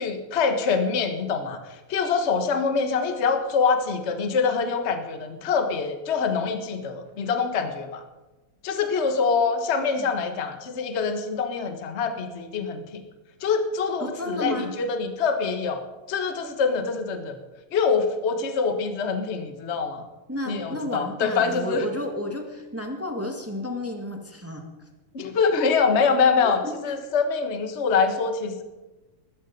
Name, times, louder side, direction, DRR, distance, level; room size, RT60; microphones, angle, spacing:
voice 1, 0.0-1.6 1.9-8.0 8.6-13.0 13.4-15.8 16.1-17.4 17.7-20.0 20.5-21.9 25.1-28.6, left 5 dB, 60° left, 7 dB, 0.6 m, -25 dB
voice 2, 14.0-14.7 20.3-24.7 26.6-26.8, left 1 dB, 10° right, 3 dB, 0.8 m, -31 dB
20.5 x 13.0 x 5.3 m, 1.1 s
omnidirectional pair, 3.6 m